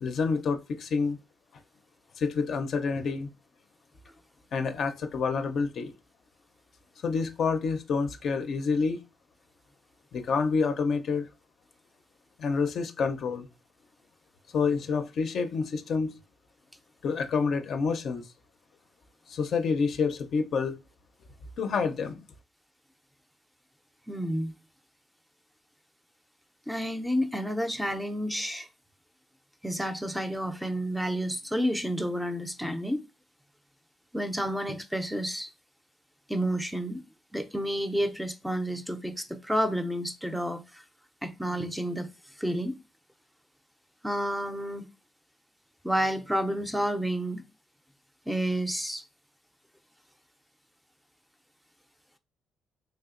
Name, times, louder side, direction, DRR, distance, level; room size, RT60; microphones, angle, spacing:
voice 1, 0.0-1.2 2.2-3.3 4.5-5.9 7.0-9.0 10.1-11.3 12.4-13.5 14.5-16.2 17.0-18.2 19.3-20.8 21.6-22.2, left 5 dB, 60° left, 0.4 m, -28 dB
voice 2, 24.1-24.5 26.7-28.7 29.6-33.0 34.1-35.5 36.3-37.0 37.3-40.8 41.2-42.1 42.4-42.8 44.0-44.8 45.8-47.4 48.3-49.0, equal, 5° right, 0.4 m, -30 dB
3.3 x 2.8 x 2.4 m
cardioid pair, 90°, 0 cm